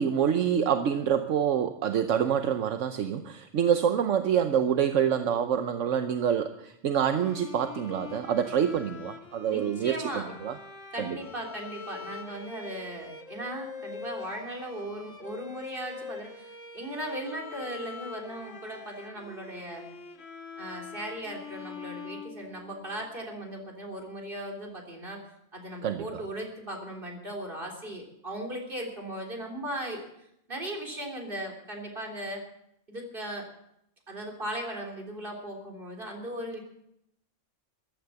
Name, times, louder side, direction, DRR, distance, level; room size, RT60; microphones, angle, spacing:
voice 1, 0.0-10.5 11.0-11.2 25.8-26.2, right 8 dB, 75° right, 8 dB, 1.2 m, -26 dB
Bowed string instrument, 7.2-23.1, left 5 dB, 75° left, 2.1 m, -44 dB
voice 2, 9.5-10.3 10.9-19.9 20.6-25.2 25.5-30.1 30.5-32.4 32.9-33.4 34.1-36.6, right 1 dB, 45° right, 1 dB, 3.8 m, -37 dB
14.5 x 12.5 x 7.0 m, 0.78 s
omnidirectional pair, 1.3 m